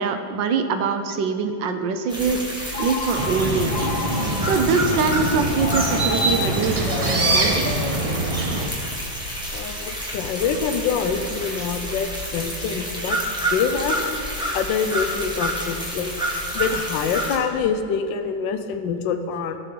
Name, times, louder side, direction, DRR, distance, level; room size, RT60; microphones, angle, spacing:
voice 1, 0.0-2.4 2.8-3.9 4.4-7.7, right 5 dB, 80° right, 7 dB, 1.5 m, -23 dB
sound 1, 2.1-17.4, equal, 5° right, 1.3 m, -29 dB
Telephone, 2.7-4.7 5.6-8.6, left 5 dB, 60° left, 0.9 m, -32 dB
sound 2, 3.2-8.7, right 2 dB, 55° right, 0.3 m, -24 dB
voice 2, 9.5-13.2 13.5-14.0 14.5-16.1 16.5-19.6, left 6 dB, 80° left, 8 dB, 1.4 m, -25 dB
16.5 x 6.5 x 3.9 m, 2.4 s
omnidirectional pair, 2.0 m